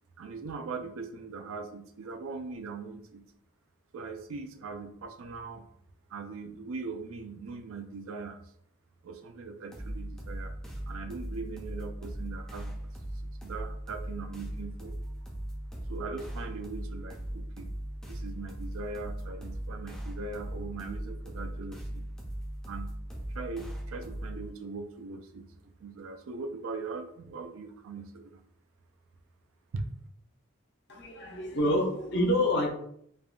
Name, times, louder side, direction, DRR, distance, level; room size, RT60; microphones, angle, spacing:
voice 1, 0.2-3.2 3.9-5.7 6.1-8.4 9.0-10.5 10.9-12.8 13.4-14.9 15.9-17.7 18.1-22.0 22.7-22.9 23.3-28.4 29.7-29.8, right 4 dB, 85° right, 6 dB, 0.4 m, -40 dB
sound 1, 9.7-24.5, right 1 dB, 5° left, 0.4 m, -39 dB
voice 2, 30.9-32.7, left 1 dB, 55° left, 1 dB, 0.6 m, -27 dB
3.4 x 2.2 x 2.3 m, 0.68 s
head